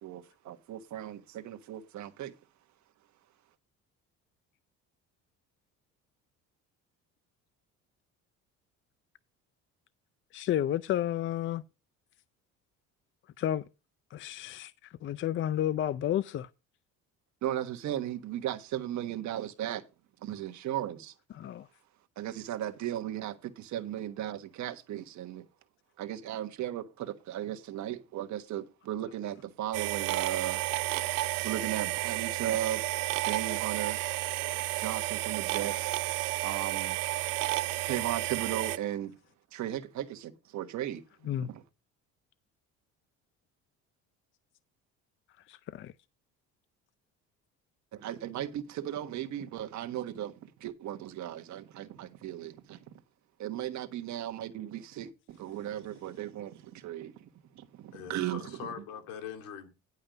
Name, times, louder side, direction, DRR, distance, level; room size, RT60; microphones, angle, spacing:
voice 1, 0.0-2.3 17.4-19.8 20.2-21.1 22.2-25.4 26.0-30.6 31.4-32.8 33.2-34.0 34.8-35.9 36.4-37.0 37.5-39.1 39.5-41.0 41.3-41.6 47.9-52.8 53.4-57.1 57.5-58.7, right 12 dB, 60° right, 1.4 m, -36 dB
voice 2, 10.3-11.6 13.4-13.6 14.1-14.7 15.0-16.5 21.3-21.7 41.3-41.5 45.5-45.9, left 11 dB, 40° left, 0.4 m, -31 dB
sound 1, 29.7-38.8, right 18 dB, 85° right, 0.7 m, -32 dB
voice 3, 57.9-59.7, left 8 dB, 85° left, 2.3 m, -42 dB
10.5 x 5.5 x 5.2 m
cardioid pair, 115°, 32 cm